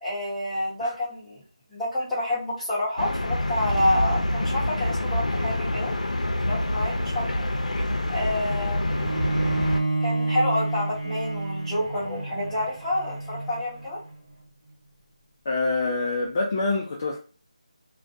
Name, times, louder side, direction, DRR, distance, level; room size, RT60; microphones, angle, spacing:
voice 1, 0.0-1.4 1.7-5.9 6.4-7.5 8.1-8.9 10.0-14.0, left 1 dB, ahead, 0.8 m, -28 dB
sound 1, 3.0-9.8, left 1 dB, 85° left, 0.5 m, -26 dB
Bowed string instrument, 8.9-14.1, right 2 dB, 55° right, 0.9 m, -29 dB
voice 2, 15.5-17.2, left 3 dB, 25° left, 0.3 m, -26 dB
2.4 x 2.1 x 2.6 m
figure-of-eight pair, 170°, 4 cm